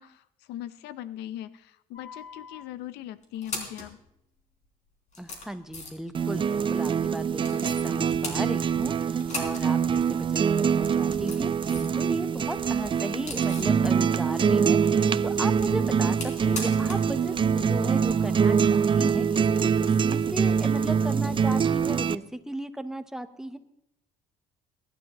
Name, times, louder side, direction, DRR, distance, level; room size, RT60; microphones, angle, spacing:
voice 1, 0.0-4.0, left 12 dB, 90° left, 16 dB, 0.7 m, -40 dB
sound 1, 1.9-2.6 3.2-3.9 4.6-4.7 5.1-6.1 7.4-7.9 8.2-8.9 9.2-9.7 10.0-10.1 10.9-12.0 12.3-13.8 15.2-17.1 17.4-17.5 19.3-19.4, left 3 dB, 45° left, 3.6 m, -39 dB
voice 2, 5.2-23.6, right 1 dB, 5° right, 10 dB, 0.9 m, -36 dB
sound 2, 6.1-22.2, right 6 dB, 30° right, 0.5 m, -24 dB
22.0 x 11.5 x 3.0 m, 0.81 s
cardioid pair, 110°, 17 cm